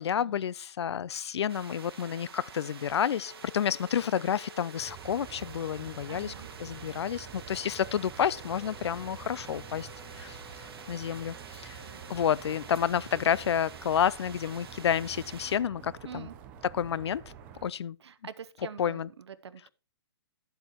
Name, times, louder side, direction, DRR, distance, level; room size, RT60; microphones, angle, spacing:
voice 1, 0.0-6.3 6.6-9.9 10.2-10.4 10.9-11.8 12.1-16.3 16.6-17.2 17.6-18.0 18.8-19.1, left 9 dB, 80° left, 0.4 m, -30 dB
sound 1, 1.5-15.6, right 6 dB, 65° right, 1.8 m, -48 dB
sound 2, 3.2-11.4 11.7-12.2, left 6 dB, 35° left, 1.1 m, -55 dB
sound 3, 4.8-17.7, right 9 dB, 10° right, 0.5 m, -48 dB
voice 2, 6.1-6.5 11.8-12.0 16.0-16.3 18.0-19.7, right 7 dB, 80° right, 0.9 m, -45 dB
12.0 x 7.9 x 3.0 m
hypercardioid pair, 175°, 14 cm